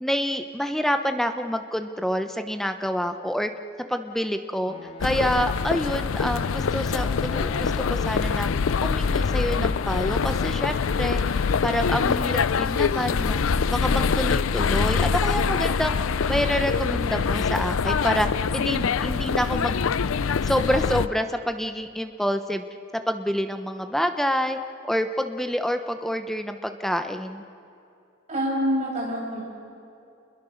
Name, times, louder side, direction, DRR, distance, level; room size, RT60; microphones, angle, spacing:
voice 1, 0.0-3.5 3.8-4.7 5.0-8.5 8.8-16.0 16.2-18.3 18.5-19.9 20.4-22.6 22.9-24.6 24.8-27.4, equal, ahead, 7 dB, 0.8 m, -27 dB
sound 1, 4.7-15.5, left 4 dB, 30° left, 2.0 m, -43 dB
sound 2, 5.0-21.1, left 5 dB, 85° left, 0.5 m, -24 dB
voice 2, 28.3-29.4, equal, 35° right, -4 dB, 7.6 m, -26 dB
29.0 x 22.0 x 6.5 m, 2.7 s
head